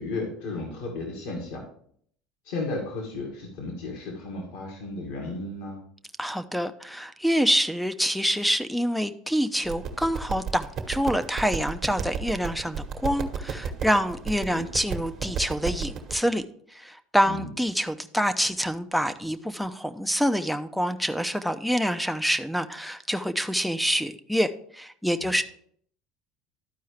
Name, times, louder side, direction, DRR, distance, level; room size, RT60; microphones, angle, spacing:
voice 1, 0.0-1.7 2.4-5.8 14.5-14.6 17.2-17.5 25.2-25.4, left 3 dB, 70° left, 1 dB, 2.0 m, -34 dB
voice 2, 6.2-16.4 16.7-25.4, equal, ahead, 11 dB, 0.6 m, -26 dB
sound 1, 9.6-16.1, right 6 dB, 45° right, 1.2 m, -34 dB
12.5 x 4.6 x 3.3 m, 0.63 s
supercardioid pair, 95°, 0 cm